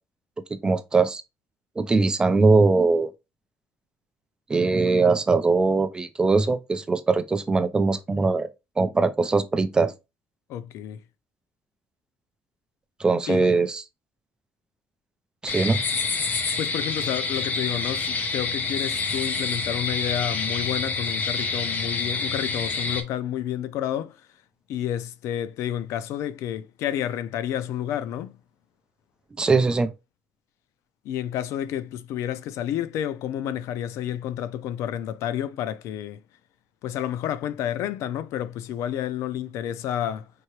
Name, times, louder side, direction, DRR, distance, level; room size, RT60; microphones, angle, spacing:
voice 1, 0.5-1.2 1.8-3.1 4.5-8.5 8.8-9.9 13.0-13.8 15.4-15.8 29.4-29.9, right 3 dB, 15° right, 0.4 m, -21 dB
voice 2, 10.5-11.0 13.3-13.6 16.6-24.3 24.7-28.4 31.0-36.2 36.8-40.3, left 10 dB, 80° left, 0.4 m, -30 dB
sound 1, 15.5-23.0, left 4 dB, 35° left, 0.7 m, -27 dB
4.6 x 2.8 x 3.0 m
cardioid pair, 160°, 5 cm